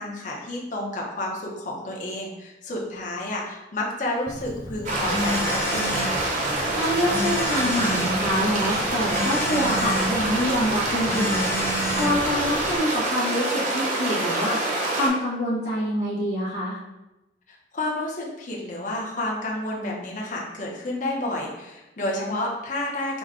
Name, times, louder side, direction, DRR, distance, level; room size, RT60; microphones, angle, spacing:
voice 1, 0.0-6.2 17.7-23.2, left 1 dB, 45° left, -2 dB, 0.8 m, -30 dB
Telephone, 4.3-12.8, left 1 dB, 15° left, 0.4 m, -31 dB
sound 1, 4.8-15.1, right 2 dB, 45° right, 0.9 m, -26 dB
voice 2, 6.7-16.8, equal, 70° left, -9 dB, 0.9 m, -26 dB
5.0 x 2.2 x 3.7 m, 0.99 s
head